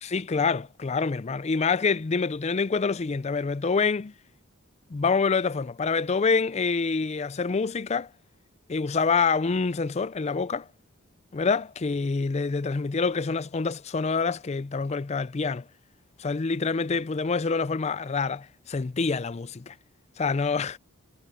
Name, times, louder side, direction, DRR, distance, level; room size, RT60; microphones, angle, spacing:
voice 1, 0.0-4.1 4.9-8.1 8.7-10.7 11.3-15.6 16.2-19.8 20.2-20.8, left 4 dB, 30° left, 0.4 m, -26 dB
head